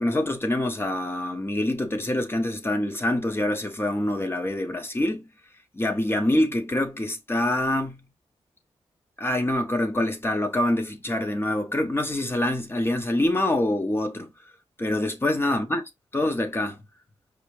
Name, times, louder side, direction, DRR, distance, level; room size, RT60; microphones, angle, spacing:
voice 1, 0.0-5.3 5.7-8.0 9.2-14.3 14.8-15.8 16.1-16.8, left 1 dB, 20° left, 0.9 m, -25 dB
4.8 x 2.7 x 3.1 m
wide cardioid pair, 120°, 11 cm